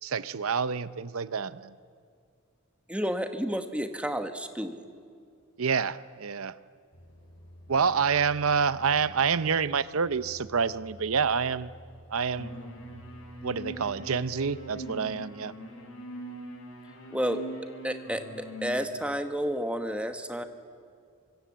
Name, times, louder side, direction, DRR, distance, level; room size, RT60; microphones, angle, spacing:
voice 1, 0.0-1.7 5.6-6.6 7.7-11.7 12.1-12.5 13.4-15.5, right 6 dB, 75° right, 15 dB, 0.7 m, -27 dB
voice 2, 2.9-4.8 17.1-17.4 17.8-20.4, equal, 5° right, 7 dB, 1.2 m, -31 dB
sound 1, 6.9-14.9, equal, 60° left, 6.7 m, -51 dB
sound 2, 12.4-18.8, right 1 dB, 80° left, 5.6 m, -42 dB
26.0 x 24.5 x 7.5 m, 2.3 s
head